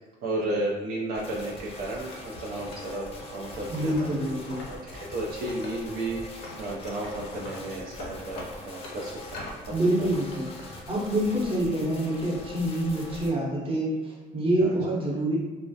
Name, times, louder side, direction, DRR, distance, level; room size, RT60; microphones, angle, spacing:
voice 1, 0.2-4.2 4.7-6.2 6.6-9.7 10.0-10.1 14.6-14.8, right 1 dB, 70° right, -4 dB, 0.4 m, -33 dB
sound 1, 1.1-13.3, left 1 dB, 35° left, 0.5 m, -42 dB
Wood, 2.1-4.8 5.1-6.1 6.4-9.6 10.0-10.7, left 2 dB, 85° left, 0.6 m, -44 dB
voice 2, 3.7-4.6 9.7-10.5 10.9-15.4, right 1 dB, 35° right, -4 dB, 0.8 m, -26 dB
2.3 x 2.0 x 2.6 m, 1.3 s
cardioid pair, 110°, 17 cm